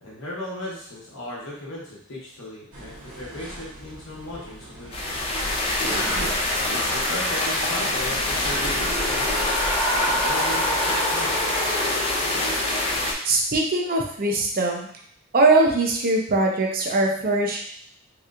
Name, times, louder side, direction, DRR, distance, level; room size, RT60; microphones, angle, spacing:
voice 1, 0.0-5.3 6.6-9.3 9.9-11.5, left 1 dB, 65° left, -6 dB, 0.9 m, -36 dB
sound 1, 2.7-8.7, right 2 dB, 75° right, 1.0 m, -39 dB
sound 2, 4.9-13.1, left 1 dB, 25° left, 0.4 m, -25 dB
sound 3, 7.9-13.1, equal, 10° left, 0.8 m, -29 dB
voice 2, 13.2-14.9 15.3-17.6, right 2 dB, 45° right, 0 dB, 0.5 m, -21 dB
3.3 x 2.9 x 2.4 m, 0.64 s
head